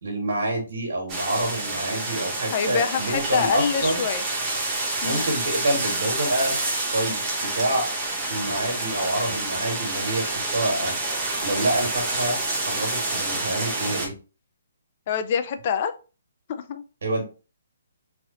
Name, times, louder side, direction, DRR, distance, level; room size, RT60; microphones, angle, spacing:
voice 1, 0.0-4.2 5.0-6.6 6.9-7.9 8.3-11.0 11.4-12.4 12.6-14.1 17.0-17.2, right 1 dB, 85° right, 1 dB, 1.5 m, -27 dB
sound 1, 1.1-14.1, right 2 dB, 15° right, 0.8 m, -28 dB
voice 2, 2.5-4.2 5.0-5.3 15.1-15.9 16.5-16.8, left 7 dB, 30° left, 9 dB, 0.4 m, -25 dB
3.3 x 2.4 x 3.8 m, 0.33 s
hypercardioid pair, 175°, 0 cm